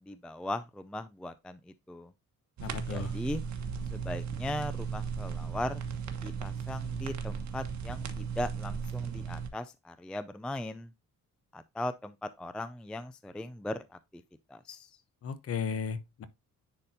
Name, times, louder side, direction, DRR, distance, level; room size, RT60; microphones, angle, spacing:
voice 1, 0.0-2.1 2.9-3.4 3.9-5.8 6.2-10.9 11.5-14.2 14.5-14.9, left 1 dB, 5° left, 0.3 m, -38 dB
voice 2, 2.6-3.1 15.2-16.2, left 6 dB, 45° left, 0.9 m, -35 dB
sound 1, 2.6-9.5, right 6 dB, 60° right, 1.2 m, -36 dB
9.9 x 4.2 x 2.7 m
cardioid pair, 160°, 32 cm